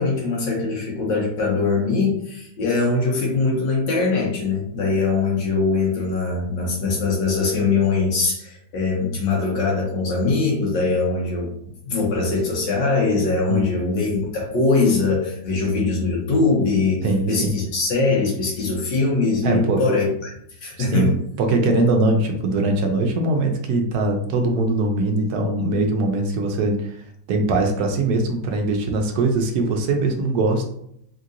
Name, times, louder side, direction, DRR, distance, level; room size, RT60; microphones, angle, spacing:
voice 1, 0.0-11.5 11.8-20.3 20.6-21.1, left 3 dB, 85° left, -2 dB, 1.5 m, -22 dB
voice 2, 17.0-17.5 19.4-19.8 20.8-27.0 27.3-30.6, right 2 dB, 70° right, 3 dB, 1.0 m, -21 dB
3.6 x 2.8 x 2.5 m, 0.72 s
omnidirectional pair, 2.0 m